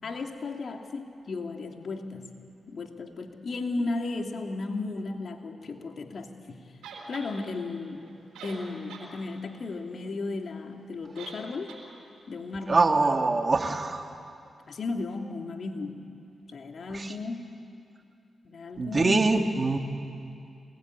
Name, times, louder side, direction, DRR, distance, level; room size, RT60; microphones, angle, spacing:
voice 1, 0.0-2.3 2.7-6.6 7.1-8.1 8.4-11.7 12.3-12.8 14.7-16.0 16.5-17.5 18.4-19.4, left 3 dB, 65° left, 3 dB, 2.8 m, -35 dB
sound 1, 6.8-7.3 8.1-8.2 8.3-9.1 9.4-9.5 11.2-11.4 11.7-11.8, right 5 dB, 90° right, 4.4 m, -43 dB
voice 2, 12.7-14.0 18.8-19.8, right 3 dB, 45° right, 4 dB, 2.5 m, -23 dB
27.5 x 21.0 x 9.8 m, 2.5 s
supercardioid pair, 45°, 0 cm